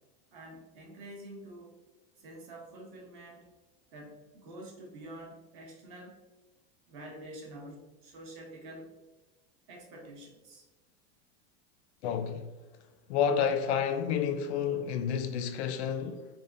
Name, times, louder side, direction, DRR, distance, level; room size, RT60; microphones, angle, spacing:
voice 1, 0.3-1.8 2.2-3.5 3.9-6.2 6.9-8.9 9.7-10.7, right 1 dB, 45° right, 0.8 m, -47 dB
voice 2, 12.0-12.5 13.1-16.3, left 7 dB, 85° left, 0.5 m, -30 dB
3.3 x 2.3 x 2.4 m
supercardioid pair, 180°, 32 cm